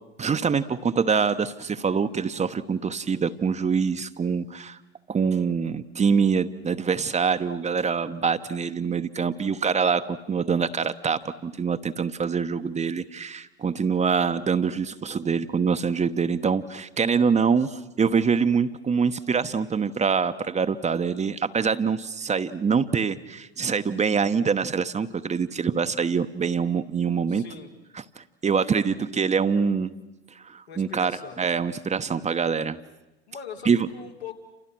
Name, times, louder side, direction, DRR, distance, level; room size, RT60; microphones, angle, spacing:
voice 1, 0.2-4.8 5.1-27.4 28.2-29.9 30.4-31.1 31.4-32.8 33.6-33.9, right 6 dB, 20° right, 10 dB, 1.1 m, -25 dB
voice 2, 27.3-27.7 30.7-31.4 33.3-34.3, left 6 dB, 85° left, -1 dB, 3.5 m, -41 dB
29.5 x 28.0 x 6.2 m, 1.0 s
figure-of-eight pair, 70°, 32 cm